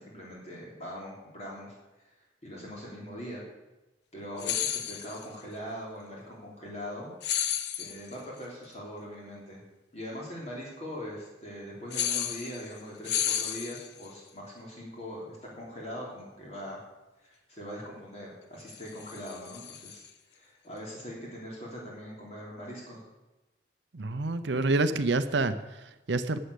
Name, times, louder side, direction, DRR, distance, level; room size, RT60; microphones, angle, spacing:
voice 1, 0.0-1.8 2.4-3.4 4.1-7.1 7.8-9.6 9.9-16.8 17.2-23.0, equal, 35° left, -3 dB, 3.3 m, -41 dB
sound 1, 4.4-5.3 7.2-8.1 11.9-12.8 13.0-14.1 18.7-20.1, left 10 dB, 65° left, 0.8 m, -32 dB
voice 2, 23.9-26.4, right 2 dB, 75° right, 11 dB, 0.7 m, -28 dB
11.5 x 7.8 x 8.2 m, 1.1 s
head